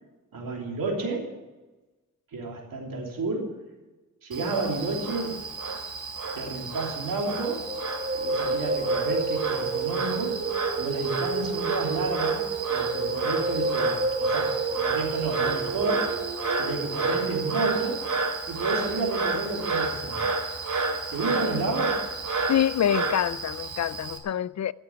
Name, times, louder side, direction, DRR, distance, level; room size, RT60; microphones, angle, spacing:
voice 1, 0.3-1.3 2.3-3.6 4.2-5.4 6.3-7.7 8.1-16.2 16.5-18.1 18.5-20.3 21.1-22.0, right 3 dB, 85° right, 3.3 m, -31 dB
Frog, 4.3-24.2, right 3 dB, 65° right, 2.6 m, -31 dB
sound 1, 7.7-17.9, right 4 dB, 35° right, 1.5 m, -30 dB
voice 2, 22.5-24.7, left 10 dB, 55° left, 0.5 m, -26 dB
15.0 x 6.9 x 9.6 m
cardioid pair, 70°, 33 cm